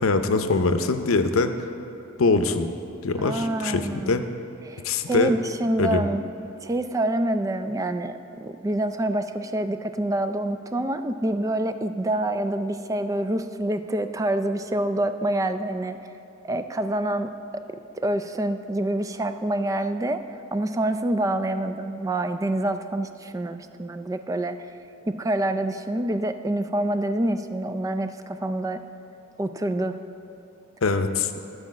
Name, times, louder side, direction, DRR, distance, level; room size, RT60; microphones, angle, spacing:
voice 1, 0.0-1.5 2.2-2.7 3.0-4.2 4.8-5.3 5.8-6.0 30.8-31.3, left 3 dB, 75° left, 8 dB, 0.6 m, -22 dB
voice 2, 3.2-4.2 4.6-6.2 6.6-16.0 16.4-24.7 25.1-28.8 29.4-30.0, right 1 dB, 15° right, 9 dB, 0.3 m, -27 dB
13.0 x 4.9 x 7.3 m, 2.9 s
head